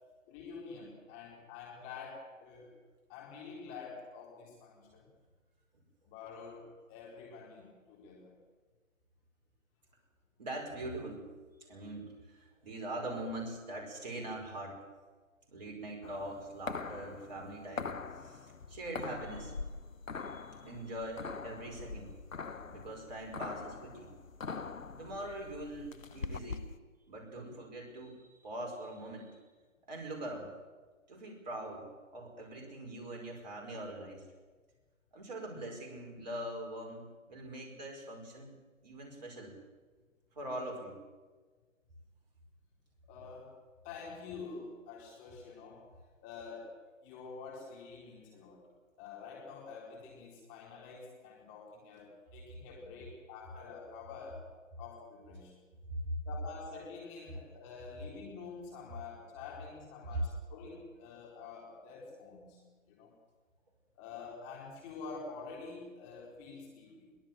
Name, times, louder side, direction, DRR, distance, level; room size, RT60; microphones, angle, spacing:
voice 1, 0.3-2.7 3.1-5.1 6.1-8.3 43.1-43.5 43.8-45.8 46.2-46.7 47.0-48.6 49.0-54.4 54.8-55.5 56.3-62.6 62.9-63.1 64.0-67.2, left 5 dB, 15° left, -2 dB, 4.1 m, -47 dB
voice 2, 10.4-11.2 11.7-14.8 15.5-19.6 20.2-22.1 22.7-24.1 25.0-26.7 27.1-29.4 29.9-30.5 31.1-34.2 35.1-38.5 38.8-39.6 40.4-41.0 55.9-56.0 60.1-60.2, right 1 dB, 30° right, 0 dB, 5.2 m, -42 dB
sound 1, 16.0-26.8, left 4 dB, 70° left, 1.2 m, -43 dB
22.5 x 18.0 x 7.7 m, 1.4 s
figure-of-eight pair, 160°, 40 cm